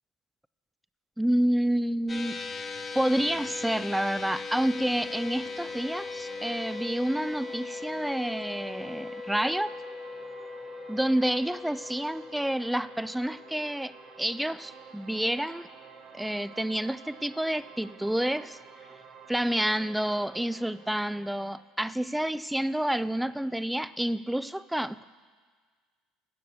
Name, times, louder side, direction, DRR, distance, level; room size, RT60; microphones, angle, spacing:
voice 1, 1.2-2.4 2.9-9.7 10.9-15.7 16.1-18.6 19.3-25.0, right 1 dB, 5° right, 16 dB, 0.3 m, -29 dB
sound 1, 2.1-14.6, left 4 dB, 25° left, 1.0 m, -39 dB
sound 2, 4.6-21.6, right 6 dB, 55° right, 1.0 m, -50 dB
9.6 x 6.7 x 6.2 m, 1.6 s
supercardioid pair, 85°, 0 cm